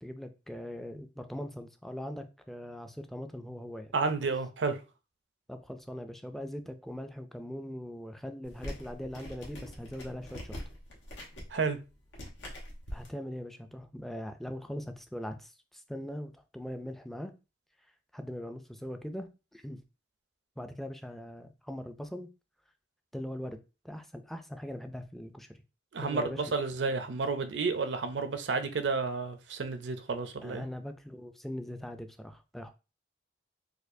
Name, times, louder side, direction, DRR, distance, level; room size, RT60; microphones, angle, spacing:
voice 1, 0.0-3.9 5.5-10.6 12.9-17.3 18.1-19.8 20.6-22.3 23.1-23.6 23.8-25.6 26.0-26.4 30.4-32.7, equal, ahead, 0.3 m, -41 dB
voice 2, 3.9-4.8 11.5-11.8 25.9-30.7, right 4 dB, 75° right, 0.5 m, -31 dB
sound 1, 8.4-13.1, equal, 90° left, 1.1 m, -43 dB
4.2 x 2.3 x 2.5 m
head